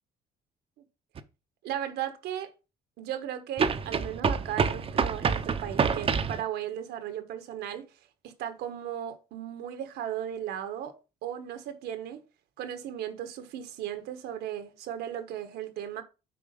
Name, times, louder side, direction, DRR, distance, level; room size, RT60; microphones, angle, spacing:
sound 1, 1.2-1.3 3.6-6.4, right 6 dB, 35° right, 0.8 m, -27 dB
voice 1, 1.6-2.5 3.0-7.9 8.2-10.9 11.2-12.2 12.6-16.0, right 10 dB, 80° right, 1.4 m, -36 dB
8.4 x 4.8 x 5.2 m
cardioid pair, 110°, 17 cm